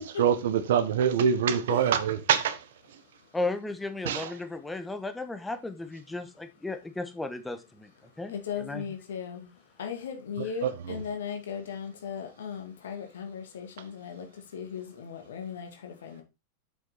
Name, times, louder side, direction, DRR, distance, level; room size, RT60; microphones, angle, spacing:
voice 1, 0.2-2.6 4.1-4.3, right 8 dB, 60° right, 1.1 m, -24 dB
voice 2, 3.3-7.9 8.2-8.3 8.6-8.8, left 2 dB, 5° left, 1.3 m, -34 dB
voice 3, 8.3-9.5 9.8-14.2 14.5-16.2, left 7 dB, 60° left, 2.2 m, -37 dB
7.6 x 6.5 x 4.2 m
figure-of-eight pair, 90°, 0 cm